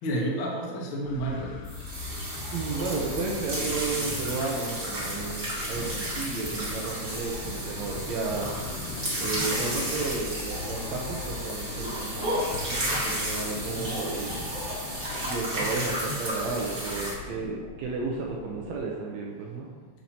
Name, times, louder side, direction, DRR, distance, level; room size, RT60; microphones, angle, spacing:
voice 1, 0.0-1.6 13.6-14.0 16.7-16.9 17.3-17.5 18.5-18.6 19.6-19.9, right 1 dB, 60° left, -2 dB, 1.3 m, -32 dB
sound 1, 1.1-18.8, left 4 dB, 80° left, 1.8 m, -40 dB
sound 2, 1.6-17.1, right 1 dB, 40° right, 1.1 m, -33 dB
voice 2, 2.5-8.5 8.8-14.5 15.2-19.7, right 4 dB, 80° right, -1 dB, 1.6 m, -33 dB
9.1 x 5.8 x 2.8 m, 1.4 s
omnidirectional pair, 4.1 m